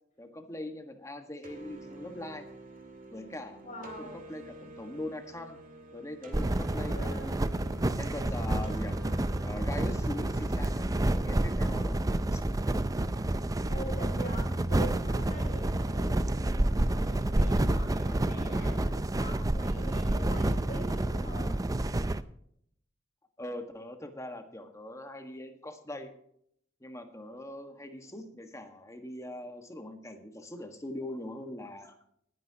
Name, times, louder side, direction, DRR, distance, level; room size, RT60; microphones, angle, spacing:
voice 1, 0.2-2.5 3.1-5.6 5.9-7.4 7.9-9.0 9.4-12.0 12.3-12.4 23.4-26.1 26.8-32.0, left 1 dB, 15° left, 5 dB, 1.5 m, -41 dB
sound 1, 1.4-11.0, right 1 dB, 45° right, 2.2 m, -48 dB
voice 2, 3.6-4.2 6.7-7.5 13.7-21.5 28.0-28.2, equal, 40° left, 0 dB, 6.0 m, -44 dB
sound 2, 6.3-22.2, right 1 dB, 20° right, 0.5 m, -29 dB
20.0 x 9.8 x 2.9 m, 0.69 s
head